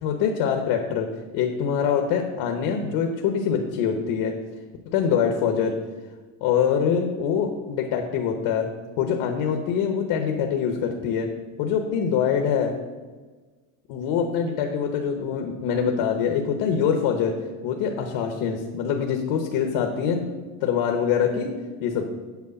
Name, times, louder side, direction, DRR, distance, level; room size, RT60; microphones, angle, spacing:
voice 1, 0.0-4.3 4.9-5.8 6.4-8.7 9.0-11.3 11.6-12.7 13.9-17.4 17.6-20.2 20.6-21.5 21.8-22.1, left 7 dB, 70° left, 3 dB, 1.0 m, -24 dB
8.3 x 4.5 x 7.0 m, 1.3 s
cardioid pair, 170°, 40 cm